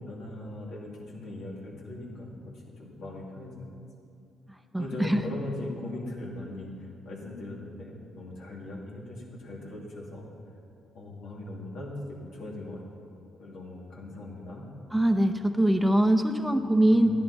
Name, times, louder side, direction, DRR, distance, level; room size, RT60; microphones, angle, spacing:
voice 1, 0.0-2.3 2.8-3.7 4.8-10.3 10.9-12.8 13.4-14.6 16.9-17.1, left 1 dB, 70° left, -3 dB, 2.5 m, -39 dB
voice 2, 4.5-5.2 14.9-17.1, right 1 dB, 5° right, 5 dB, 0.7 m, -23 dB
13.5 x 10.5 x 4.1 m, 2.5 s
cardioid pair, 90°, 0 cm